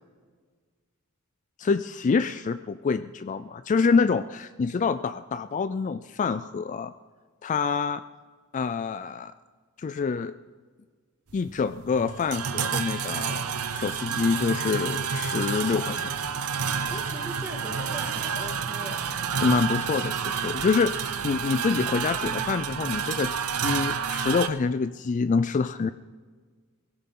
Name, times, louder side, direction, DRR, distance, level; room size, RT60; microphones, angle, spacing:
voice 1, 1.6-6.9 7.4-8.0 8.5-9.3 9.8-10.3 11.3-13.4 13.7-16.1 19.4-25.9, left 5 dB, 35° left, 12 dB, 0.3 m, -26 dB
sound 1, 11.3-24.5, right 6 dB, 90° right, 0.8 m, -29 dB
voice 2, 16.9-19.2, right 1 dB, 10° right, 2 dB, 1.9 m, -41 dB
18.5 x 16.5 x 3.8 m, 1.5 s
head